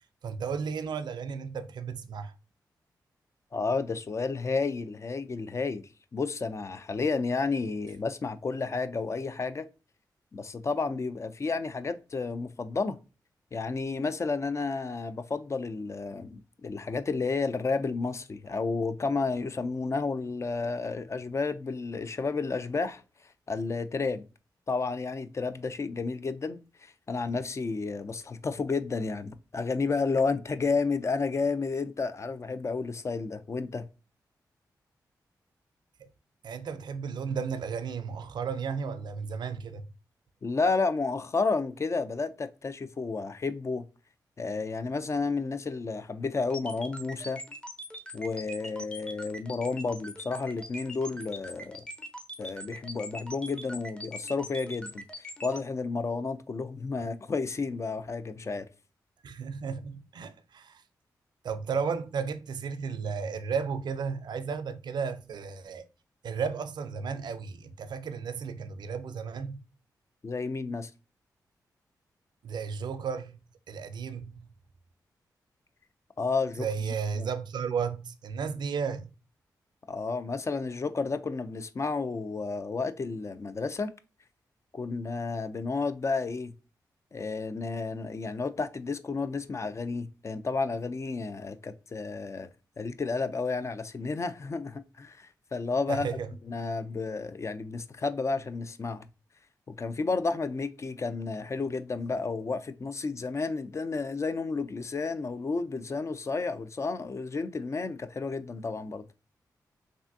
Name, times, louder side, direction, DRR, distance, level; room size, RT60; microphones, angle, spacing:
voice 1, 0.2-2.3 36.0-36.1 36.4-39.8 59.2-60.8 61.4-65.8 66.2-69.6 72.4-73.4 73.7-74.5 76.6-79.1 95.9-96.3, right 6 dB, 75° right, 0.4 m, -34 dB
voice 2, 3.5-5.8 6.1-9.7 10.3-13.0 13.5-23.0 23.5-24.2 24.7-33.9 40.4-43.9 44.4-47.4 48.1-51.8 52.4-55.0 55.4-58.7 70.2-70.9 76.2-77.3 79.9-83.9 84.7-86.5 87.1-92.5 92.8-96.1 96.5-99.1 99.7-109.1, left 4 dB, 40° left, 0.4 m, -31 dB
sound 1, 46.5-55.6, equal, 15° left, 0.7 m, -42 dB
3.3 x 2.5 x 2.6 m
cardioid pair, 55°, 8 cm